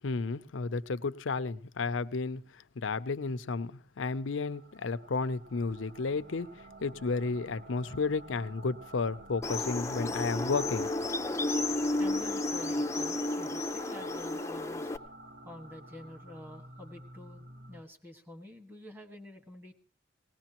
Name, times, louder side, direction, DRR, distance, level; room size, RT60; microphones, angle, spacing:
voice 1, 0.0-2.4 2.8-3.7 4.0-6.5 6.8-10.9, left 4 dB, 80° left, 0.6 m, -32 dB
sound 1, 4.3-17.8, right 1 dB, 50° right, 0.9 m, -50 dB
sound 2, 9.4-15.0, left 2 dB, 15° left, 0.6 m, -32 dB
voice 2, 12.0-14.9 15.4-19.7, left 1 dB, 10° right, 1.6 m, -48 dB
20.0 x 18.0 x 3.0 m
head